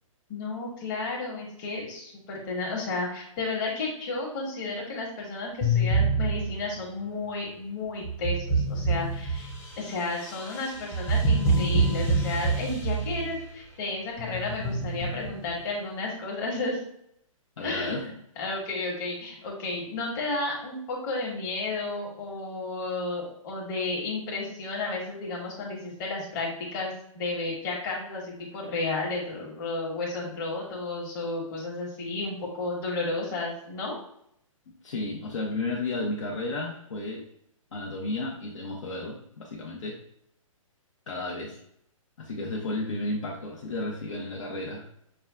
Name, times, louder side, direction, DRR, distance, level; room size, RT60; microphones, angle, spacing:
voice 1, 0.3-9.5 9.8-16.8 17.6-33.9, left 3 dB, 35° left, -2 dB, 1.3 m, -32 dB
sound 1, 5.6-6.8 8.0-13.4 14.2-15.5, right 2 dB, 15° left, 0.7 m, -27 dB
voice 2, 17.6-18.1 34.8-37.3 37.7-40.0 41.1-41.6 42.2-44.9, left 2 dB, 60° left, -3 dB, 0.9 m, -33 dB
6.2 x 2.3 x 2.3 m, 0.71 s
hypercardioid pair, 145°, 18 cm